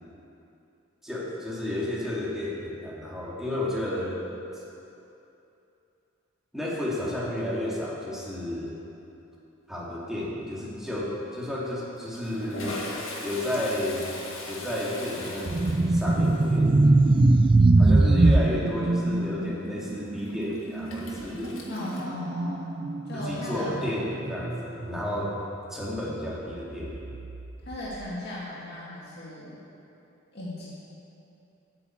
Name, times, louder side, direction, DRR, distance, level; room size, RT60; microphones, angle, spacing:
voice 1, 1.0-4.3 4.5-4.6 6.5-8.7 9.7-12.8 13.2-14.1 14.5-16.7 17.8-21.5 23.3-25.3 25.7-27.0, left 1 dB, ahead, -6 dB, 2.3 m, -32 dB
Toilet flush, 9.8-10.2 10.5-10.6 11.6-22.0, left 2 dB, 75° left, 1.9 m, -41 dB
sound 1, 15.5-25.4 25.7-26.0 26.7-27.7, right 2 dB, 25° right, 0.4 m, -23 dB
voice 2, 21.7-22.8 23.0-23.8 27.6-29.6 30.3-30.7, left 1 dB, 55° left, -7 dB, 2.1 m, -36 dB
8.8 x 8.6 x 8.5 m, 2.9 s
head